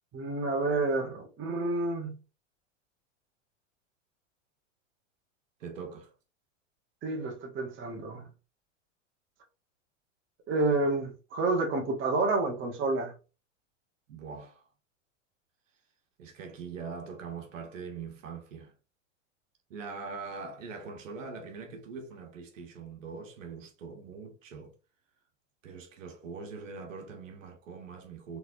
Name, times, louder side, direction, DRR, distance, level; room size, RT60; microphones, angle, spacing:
voice 1, 0.1-2.2 7.0-8.3 10.5-13.1, right 3 dB, 30° right, 1.5 m, -29 dB
voice 2, 5.6-6.1 14.1-14.6 16.2-18.7 19.7-24.7 25.6-28.4, right 5 dB, 85° right, 1.3 m, -42 dB
4.2 x 3.4 x 2.6 m
hypercardioid pair, 120°, 38 cm